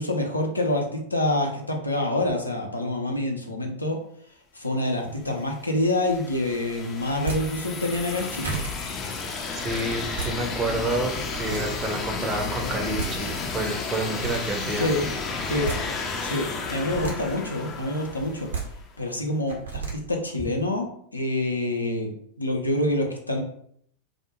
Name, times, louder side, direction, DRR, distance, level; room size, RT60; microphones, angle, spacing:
voice 1, 0.0-4.0 4.5-8.5 14.7-15.1 15.4-15.7 16.2-18.5 19.0-22.1 22.4-23.4, left 1 dB, 85° left, 1 dB, 0.5 m, -27 dB
sound 1, 5.2-18.9, left 4 dB, 25° left, 0.4 m, -32 dB
sound 2, 7.2-7.4 8.1-8.2 8.4-8.7 9.9-10.3 11.0-11.6 12.7-12.8 13.0-13.1 13.9-14.4 15.4-15.8 16.7-17.1 18.3-18.6 19.5-19.9, right 5 dB, 70° right, 0.8 m, -31 dB
voice 2, 9.6-14.9, right 2 dB, 20° right, 2 dB, 0.5 m, -29 dB
2.4 x 2.1 x 2.9 m, 0.66 s
figure-of-eight pair, 90°, 0 cm